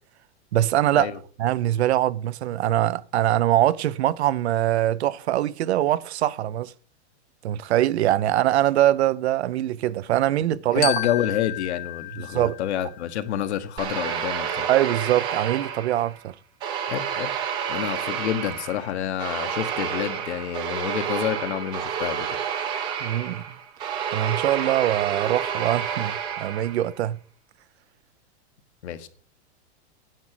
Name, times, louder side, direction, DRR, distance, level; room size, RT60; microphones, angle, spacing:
voice 1, 0.5-1.1 1.4-6.7 7.4-10.9 12.3-12.6 14.7-16.3 23.0-23.4 24.1-27.2, right 13 dB, 70° right, 0.7 m, -23 dB
voice 2, 10.7-14.7 16.9-17.3 17.7-22.3 28.8-29.1, left 10 dB, 75° left, 1.5 m, -28 dB
Glockenspiel, 10.8-13.3, left 14 dB, 35° left, 0.9 m, -32 dB
sound 1, 13.8-16.2 16.6-26.9, right 8 dB, 15° right, 0.6 m, -30 dB
10.0 x 6.1 x 7.7 m
supercardioid pair, 175°, 34 cm